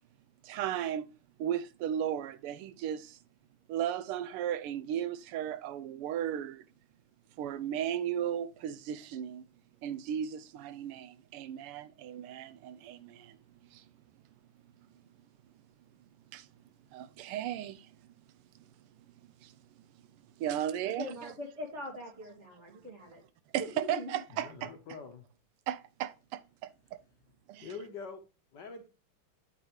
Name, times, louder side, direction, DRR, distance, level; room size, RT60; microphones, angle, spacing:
voice 1, 0.4-1.1 1.4-3.2 3.7-6.6 7.4-9.4 9.8-13.4 13.7-13.8 16.3-16.5 16.9-17.9 19.4-19.5 20.4-21.3 23.5-24.7 25.7-26.7 27.5-27.7, right 10 dB, 85° right, 1.5 m, -35 dB
voice 2, 20.8-23.2 23.6-24.1, left 1 dB, 30° right, 2.3 m, -42 dB
voice 3, 24.3-25.3 27.6-28.2 28.5-28.8, left 5 dB, 60° left, 1.4 m, -44 dB
9.2 x 5.6 x 3.1 m
omnidirectional pair, 2.4 m